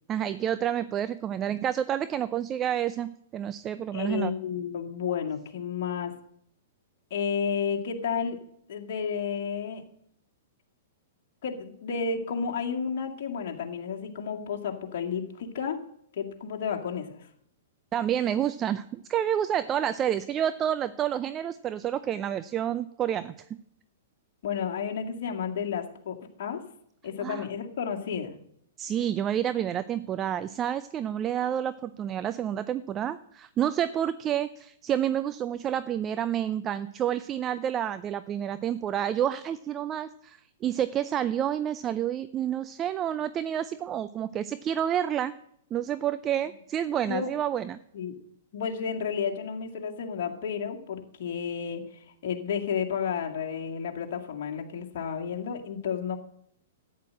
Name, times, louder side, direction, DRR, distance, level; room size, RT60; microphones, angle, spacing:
voice 1, 0.1-4.3 17.9-23.6 27.2-27.5 28.8-45.3 45.7-47.8, right 10 dB, 25° right, 14 dB, 0.5 m, -29 dB
voice 2, 3.9-6.1 7.1-8.4 8.7-9.8 11.4-15.8 16.1-17.3 24.4-26.6 27.0-28.4 47.1-47.3 47.9-48.1 48.5-56.2, left 6 dB, 50° left, 1 dB, 2.2 m, -32 dB
13.5 x 9.0 x 7.5 m, 0.72 s
figure-of-eight pair, 110°, 0 cm